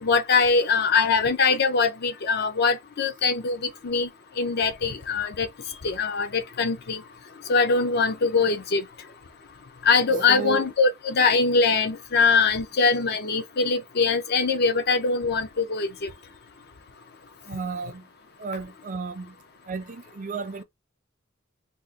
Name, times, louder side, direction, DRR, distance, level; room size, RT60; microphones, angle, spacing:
voice 1, 0.0-4.1 4.4-5.5 5.8-7.0 7.5-8.8 9.8-16.1, left 4 dB, 50° left, 0.6 m, -22 dB
voice 2, 10.3-10.6 17.4-18.1 18.4-19.4 19.7-20.6, right 4 dB, 40° right, 0.5 m, -33 dB
2.8 x 2.4 x 3.7 m
head